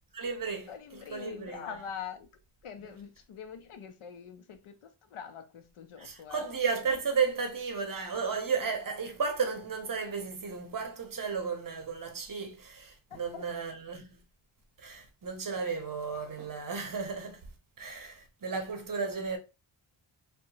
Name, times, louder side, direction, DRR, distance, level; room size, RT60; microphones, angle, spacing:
voice 1, 0.1-1.8 6.0-14.2 14.8-17.5 17.8-19.4, right 5 dB, 45° right, 0.7 m, -34 dB
voice 2, 0.7-2.3 2.6-6.5 13.1-13.4, left 7 dB, 80° left, 0.6 m, -44 dB
2.8 x 2.2 x 2.7 m
wide cardioid pair, 100°, 50 cm